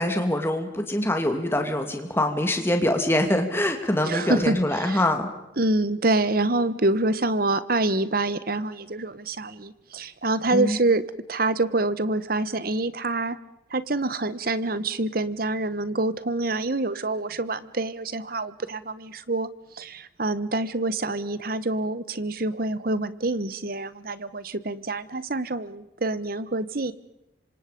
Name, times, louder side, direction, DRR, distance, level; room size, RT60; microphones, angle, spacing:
voice 1, 0.0-5.3 10.5-10.8, left 1 dB, 10° left, 5 dB, 2.6 m, -24 dB
voice 2, 4.1-5.0 5.6-11.0 11.3-13.4 13.7-19.5 19.8-26.9, right 2 dB, 50° right, 15 dB, 1.1 m, -26 dB
27.0 x 26.0 x 5.3 m, 0.91 s
head